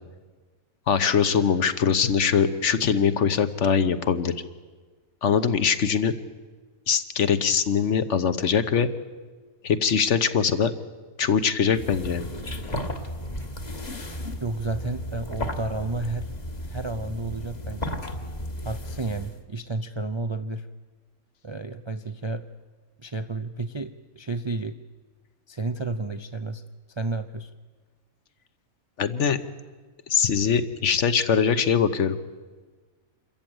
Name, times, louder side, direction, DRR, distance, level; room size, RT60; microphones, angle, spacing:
voice 1, 0.9-4.3 5.2-6.1 6.9-8.9 9.6-10.7 11.2-12.3 13.9-14.4 29.0-29.4 30.1-32.2, left 7 dB, 60° left, 11 dB, 1.3 m, -22 dB
sound 1, 11.7-19.4, left 1 dB, 30° left, 1.6 m, -34 dB
voice 2, 14.1-18.0 18.6-20.7 21.4-22.4 23.0-24.8 25.5-26.6 26.9-27.5, right 3 dB, 35° right, 8 dB, 0.5 m, -32 dB
26.5 x 14.0 x 9.0 m, 1.4 s
omnidirectional pair, 1.5 m